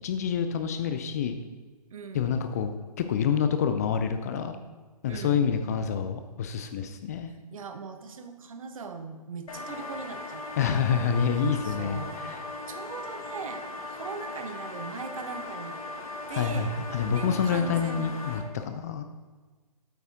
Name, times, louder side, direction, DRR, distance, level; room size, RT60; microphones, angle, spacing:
voice 1, 0.0-1.4 2.1-2.7 3.0-4.6 5.0-7.3 10.6-12.4 16.3-19.0, left 7 dB, 25° left, 8 dB, 0.4 m, -27 dB
voice 2, 1.9-2.4 5.1-5.5 7.5-11.0 11.6-12.2 12.7-15.8 16.3-16.7 17.1-18.2, right 5 dB, 55° right, 7 dB, 1.1 m, -40 dB
sound 1, 9.5-18.4, left 2 dB, 60° left, 2.0 m, -38 dB
8.9 x 8.2 x 3.7 m, 1.4 s
figure-of-eight pair, 140°, 20 cm